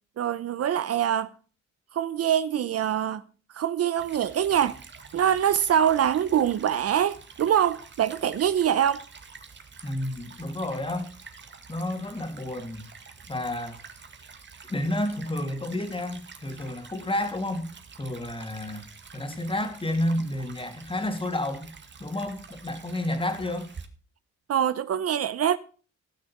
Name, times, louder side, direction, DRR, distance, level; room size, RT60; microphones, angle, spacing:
voice 1, 0.2-1.3 1.9-3.2 3.5-4.8 5.1-9.0 24.5-25.6, right 9 dB, 55° right, 0.7 m, -24 dB
Stream / Trickle dribble, 4.0-23.9, right 5 dB, 40° right, 2.1 m, -48 dB
voice 2, 9.8-11.1 11.7-12.8 13.3-13.8 14.7-17.7 18.0-18.8 19.1-21.7 22.0-23.7, left 1 dB, 15° left, 3.0 m, -30 dB
16.0 x 6.3 x 5.9 m
cardioid pair, 90°, 30 cm